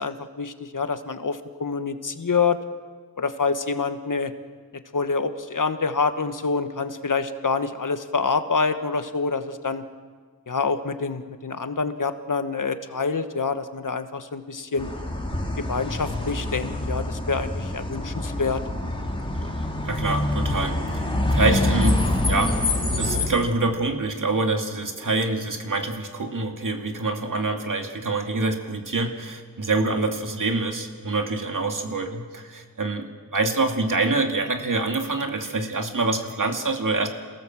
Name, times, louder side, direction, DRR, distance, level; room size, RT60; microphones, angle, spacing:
voice 1, 0.0-2.6 3.2-4.3 4.9-9.8 10.5-14.9 15.6-18.6, left 4 dB, 60° left, 9 dB, 1.4 m, -26 dB
sound 1, 14.8-23.3, left 1 dB, 15° left, 3.7 m, -26 dB
voice 2, 19.8-22.6 23.0-33.1 33.3-37.1, right 3 dB, 60° right, 4 dB, 2.6 m, -26 dB
28.0 x 18.0 x 7.6 m, 1.5 s
wide cardioid pair, 85°, 35 cm